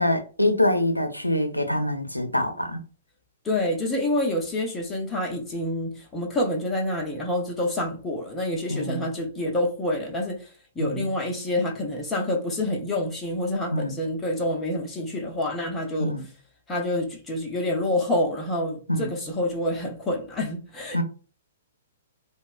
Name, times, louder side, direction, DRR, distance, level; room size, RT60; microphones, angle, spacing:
voice 1, 0.0-2.8 8.7-9.0 10.8-11.1 13.7-13.9 16.0-16.2 18.9-19.1 20.9-21.0, left 1 dB, 90° left, 0.4 m, -25 dB
voice 2, 3.4-16.2 16.7-21.0, left 1 dB, 15° left, 0.5 m, -27 dB
2.8 x 2.0 x 2.3 m
figure-of-eight pair, 115°, 0 cm